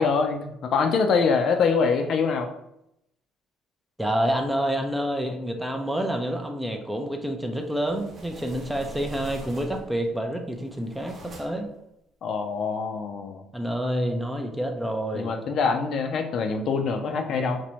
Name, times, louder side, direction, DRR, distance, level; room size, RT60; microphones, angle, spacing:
voice 1, 0.0-2.5 12.2-13.4 15.1-17.6, left 5 dB, 55° left, 5 dB, 0.4 m, -24 dB
voice 2, 4.0-11.7 13.5-15.3, right 1 dB, 5° right, 3 dB, 0.4 m, -28 dB
sound 1, 7.6-10.0 10.5-11.8, right 2 dB, 40° right, 0.7 m, -43 dB
2.8 x 2.6 x 4.2 m, 0.81 s
cardioid pair, 125°, 0 cm